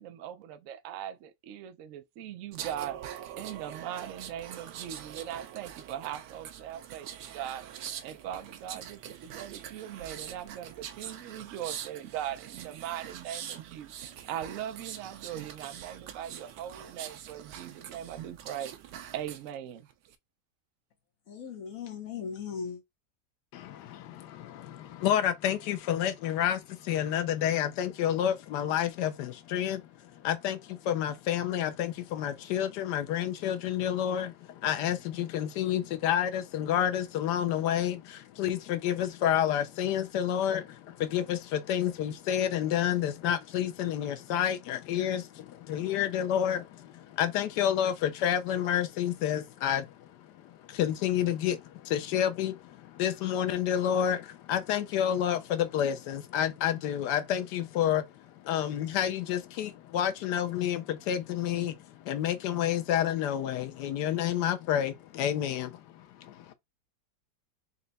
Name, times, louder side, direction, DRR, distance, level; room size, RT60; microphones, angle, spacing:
voice 1, 0.0-3.0 3.4-7.1 7.3-18.7 19.1-19.9, right 10 dB, 70° right, 0.8 m, -40 dB
sound 1, 2.5-19.5 19.9-20.1, right 10 dB, 85° right, 1.2 m, -44 dB
voice 2, 21.3-22.8, left 6 dB, 60° left, 1.3 m, -38 dB
voice 3, 23.5-66.4, left 10 dB, 85° left, 1.2 m, -29 dB
4.2 x 2.2 x 3.9 m
omnidirectional pair, 1.8 m